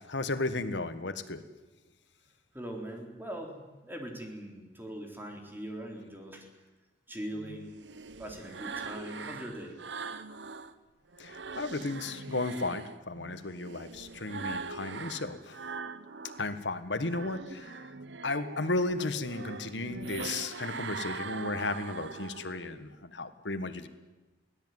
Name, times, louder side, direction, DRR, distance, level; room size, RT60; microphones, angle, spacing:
voice 1, 0.1-1.4 11.2-15.6 16.4-17.8 18.2-23.9, left 2 dB, 85° left, 10 dB, 1.6 m, -34 dB
voice 2, 2.5-6.5 7.1-7.8 8.2-9.8, right 1 dB, 10° right, 2 dB, 3.9 m, -41 dB
sound 1, 7.3-10.7 11.1-16.5 16.9-22.7, right 4 dB, 85° right, 1.1 m, -42 dB
23.5 x 17.0 x 9.5 m, 1.1 s
head